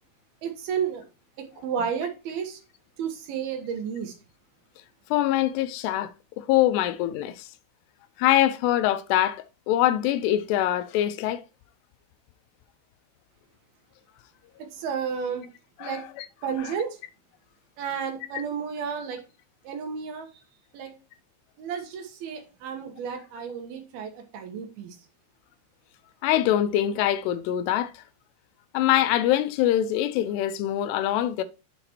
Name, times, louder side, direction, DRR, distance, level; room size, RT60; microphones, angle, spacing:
voice 1, 0.4-1.0 1.4-2.6 3.0-4.1 14.6-15.5 15.8-16.0 16.4-17.0 17.8-19.2 19.6-20.3 20.7-20.9 21.6-25.0, right 7 dB, 70° right, 2.8 m, -32 dB
voice 2, 5.1-6.1 6.4-7.5 8.2-11.4 15.8-16.0 16.6-16.7 26.2-28.0 28.7-31.4, left 12 dB, 85° left, 2.7 m, -24 dB
7.6 x 3.9 x 4.4 m
omnidirectional pair, 4.8 m